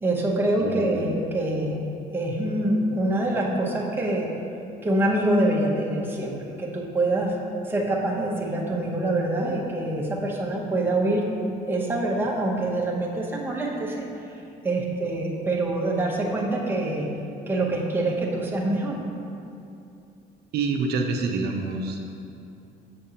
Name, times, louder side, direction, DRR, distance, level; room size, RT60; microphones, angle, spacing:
voice 1, 0.0-1.8 2.1-4.3 4.8-7.4 7.7-11.3 11.7-14.1 14.6-17.1 17.5-19.0, right 1 dB, 15° right, -2 dB, 0.9 m, -25 dB
voice 2, 20.5-22.1, right 4 dB, 70° right, 2 dB, 0.6 m, -27 dB
7.1 x 5.2 x 2.9 m, 2.6 s
cardioid pair, 110°, 17 cm